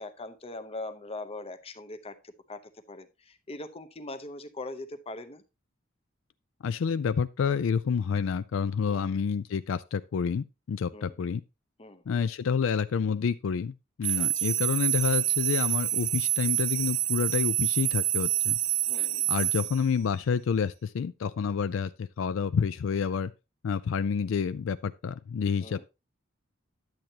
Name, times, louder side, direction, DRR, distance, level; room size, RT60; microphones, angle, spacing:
voice 1, 0.0-2.6 2.9-5.4 8.9-9.1 10.9-11.2 11.8-12.0 14.2-14.5 18.8-19.3 25.6-25.8, left 2 dB, 30° left, 0.7 m, -41 dB
voice 2, 6.6-11.4 12.1-18.6 19.0-23.3 23.6-25.9, left 6 dB, 75° left, 0.4 m, -29 dB
sound 1, 14.0-19.8, right 16 dB, 75° right, 0.9 m, -27 dB
10.5 x 7.8 x 2.8 m
head